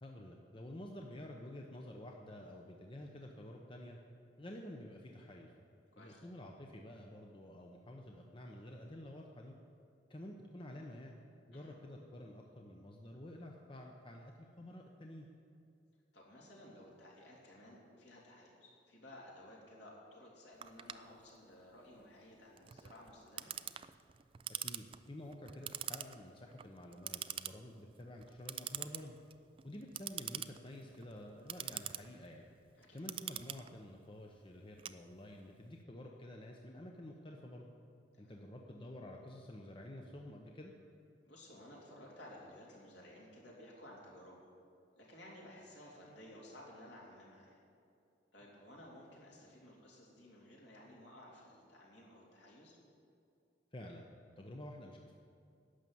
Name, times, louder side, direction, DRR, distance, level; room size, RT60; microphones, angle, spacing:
voice 1, 0.0-4.0 4.4-5.5 6.0-9.5 10.1-11.2 11.5-15.3 24.6-29.2 29.6-32.5 32.9-37.7 38.2-40.7 53.7-54.1 54.4-55.1, left 1 dB, 30° left, 1 dB, 0.8 m, -50 dB
voice 2, 16.1-23.5 32.8-33.0 38.1-38.4 41.3-44.5 45.0-47.6 48.3-52.8, left 1 dB, 65° left, -4 dB, 3.4 m, -56 dB
Clock, 20.6-35.6, right 10 dB, 30° right, 0.3 m, -46 dB
11.5 x 7.1 x 9.3 m, 2.5 s
head